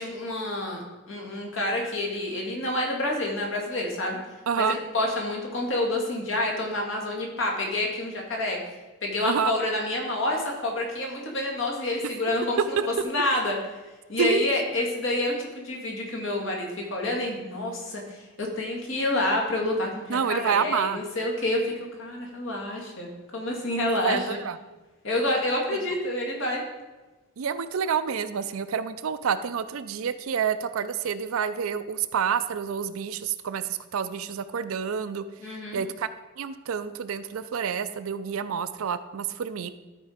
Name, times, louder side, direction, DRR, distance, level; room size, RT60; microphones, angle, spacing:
voice 1, 0.0-4.2 4.6-8.6 9.0-12.8 13.0-13.6 14.1-24.4 25.0-26.6 35.4-35.8, left 1 dB, 60° left, -1 dB, 2.0 m, -28 dB
voice 2, 4.5-4.8 9.2-9.5 12.8-12.9 14.2-14.5 20.1-21.0 23.9-24.6 27.4-35.2 35.7-36.1 36.4-39.7, right 7 dB, 75° right, 11 dB, 0.4 m, -28 dB
13.0 x 4.5 x 5.0 m, 1.2 s
head